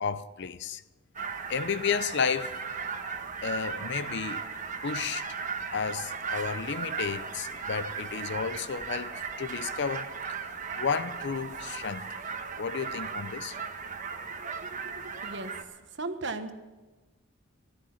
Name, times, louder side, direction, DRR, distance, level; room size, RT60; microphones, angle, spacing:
voice 1, 0.0-0.8 1.5-2.5 3.4-4.5 4.8-5.3 5.7-10.1 10.8-12.1 12.6-13.6, left 6 dB, 55° left, 0.6 m, -32 dB
sound 1, 1.1-15.6, right 5 dB, 40° right, 1.2 m, -37 dB
voice 2, 14.3-15.5 15.9-16.5, right 3 dB, 60° right, 1.2 m, -38 dB
15.5 x 13.0 x 7.1 m
head